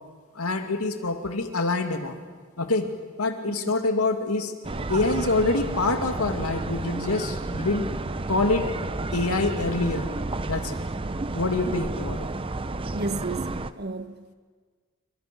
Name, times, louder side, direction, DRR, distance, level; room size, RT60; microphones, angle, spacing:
voice 1, 0.4-2.2 2.6-2.9 3.2-7.9 8.3-8.7 9.1-10.1 10.4-10.8 11.3-12.3, left 3 dB, 85° left, 2.3 m, -26 dB
sound 1, 4.6-13.7, right 2 dB, 25° right, 0.6 m, -31 dB
voice 2, 12.9-14.3, right 2 dB, 45° right, 1.2 m, -33 dB
27.0 x 24.0 x 6.1 m
head